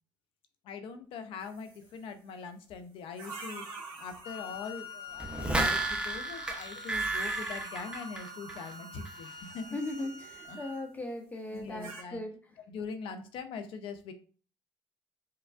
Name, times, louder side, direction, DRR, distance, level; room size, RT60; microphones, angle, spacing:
voice 1, 0.6-3.6 4.0-10.1 10.4-10.7 11.5-12.2 12.7-14.1, left 5 dB, 75° left, 9 dB, 0.5 m, -42 dB
sound 1, 1.4-2.0 3.1-6.0 6.8-10.8 11.5-12.0, right 3 dB, 75° right, 1.3 m, -47 dB
Wind instrument woodwind instrument, 4.2-10.9, left 4 dB, 55° left, 1.3 m, -46 dB
sound 2, 5.2-8.7 9.1-9.2, right 2 dB, 10° right, 0.6 m, -32 dB
voice 2, 9.7-12.4, left 2 dB, 15° left, 3 dB, 0.8 m, -38 dB
4.5 x 2.3 x 2.4 m, 0.40 s
cardioid pair, 115°, 9 cm